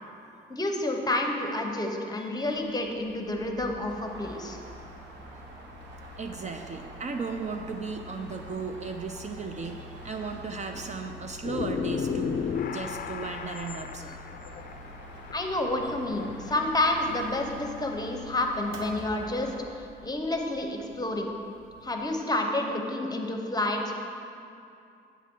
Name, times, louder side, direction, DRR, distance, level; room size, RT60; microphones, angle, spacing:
voice 1, 0.5-4.6 15.3-19.5 20.0-21.3 21.8-23.9, left 1 dB, 20° left, 3 dB, 0.9 m, -29 dB
voice 2, 2.2-2.6 3.3-3.4 6.2-14.2, right 4 dB, 35° right, 5 dB, 0.5 m, -36 dB
Mechanical fan, 2.4-22.1, left 1 dB, 80° right, 1.0 m, -48 dB
sound 1, 3.8-19.7, right 1 dB, 60° right, 1.2 m, -49 dB
sound 2, 11.4-17.2, left 6 dB, 45° left, 0.4 m, -34 dB
8.3 x 7.4 x 3.8 m, 2.6 s
cardioid pair, 90°, 20 cm